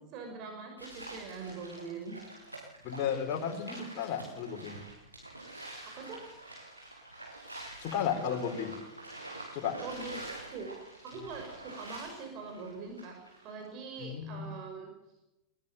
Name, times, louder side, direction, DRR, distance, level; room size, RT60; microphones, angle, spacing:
voice 1, 0.1-2.2 5.9-6.2 9.8-10.2 10.5-10.7 11.0-13.2 13.4-14.9, right 4 dB, 40° right, 2 dB, 6.0 m, -42 dB
sound 1, 0.8-13.7, right 2 dB, 85° right, 6.8 m, -47 dB
voice 2, 2.8-4.8 7.8-8.7 9.5-9.7 14.0-14.5, left 8 dB, 40° left, 2 dB, 4.6 m, -33 dB
21.0 x 19.5 x 7.5 m, 0.96 s
figure-of-eight pair, 90°, 0 cm